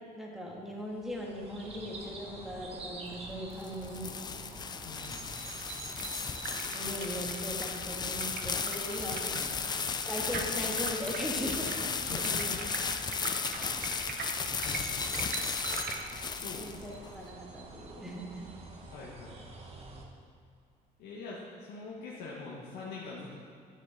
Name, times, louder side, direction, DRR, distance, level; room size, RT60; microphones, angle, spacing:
voice 1, 0.1-4.1 6.7-9.4 9.8-11.6 12.1-12.5 16.4-18.5, equal, ahead, -2 dB, 1.6 m, -39 dB
sound 1, 0.9-20.1, right 3 dB, 35° right, 1.2 m, -47 dB
sound 2, 3.3-17.1, left 6 dB, 25° left, 0.4 m, -35 dB
voice 2, 4.8-5.2 9.3-9.5 12.1-12.6 13.2-13.7 14.6-15.2 16.1-16.9 18.9-19.4 21.0-23.3, left 4 dB, 90° left, -5 dB, 1.3 m, -44 dB
sound 3, 5.1-16.0, right 4 dB, 65° right, 1.0 m, -43 dB
9.9 x 7.4 x 4.0 m, 2.3 s
cardioid pair, 110°, 17 cm